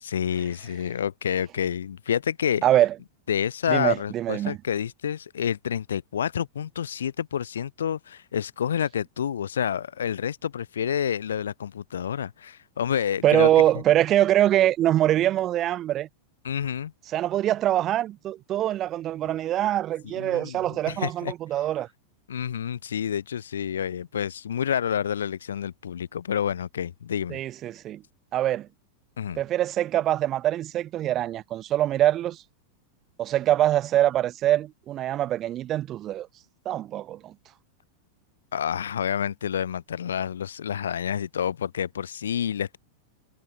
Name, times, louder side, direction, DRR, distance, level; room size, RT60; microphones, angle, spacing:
voice 1, 0.0-2.6 3.3-13.5 16.4-16.9 20.0-20.6 20.9-21.3 22.3-27.4 29.2-29.4 38.5-42.8, left 8 dB, 65° left, 2.2 m, -28 dB
voice 2, 2.6-2.9 3.7-4.6 13.2-16.1 17.1-21.9 27.3-28.0 28.3-28.7 29.4-32.4 33.2-36.3 36.6-37.3, right 13 dB, 30° right, 1.0 m, -24 dB
figure-of-eight pair, 90°, 0 cm